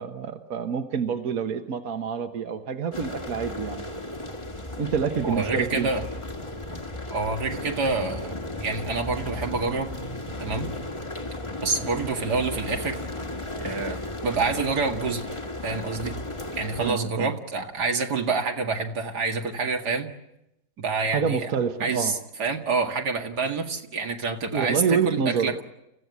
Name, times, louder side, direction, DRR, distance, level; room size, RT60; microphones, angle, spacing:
voice 1, 0.0-3.9 4.8-5.9 16.8-17.3 21.1-22.1 24.5-25.5, right 6 dB, 65° right, 6 dB, 1.6 m, -27 dB
sound 1, 2.9-16.9, left 1 dB, 20° left, 1.5 m, -35 dB
voice 2, 5.2-6.0 7.1-9.9 10.4-10.7 11.6-13.0 13.6-15.2 15.6-16.2 16.6-20.1 20.8-21.5 21.8-25.6, right 4 dB, 85° right, 3 dB, 2.6 m, -27 dB
29.0 x 15.5 x 9.5 m, 0.88 s
omnidirectional pair, 1.7 m